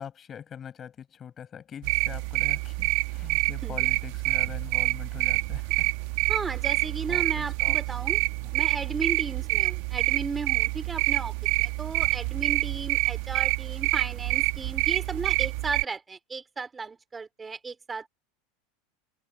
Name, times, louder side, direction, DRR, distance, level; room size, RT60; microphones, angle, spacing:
voice 1, 0.0-5.9 7.1-7.8 8.4-8.6, left 8 dB, 30° left, 6.6 m, -43 dB
sound 1, 1.8-15.8, right 24 dB, 65° right, 1.1 m, -27 dB
voice 2, 6.3-8.2 8.5-18.1, right 4 dB, 15° right, 2.5 m, -35 dB
supercardioid pair, 130°, 0 cm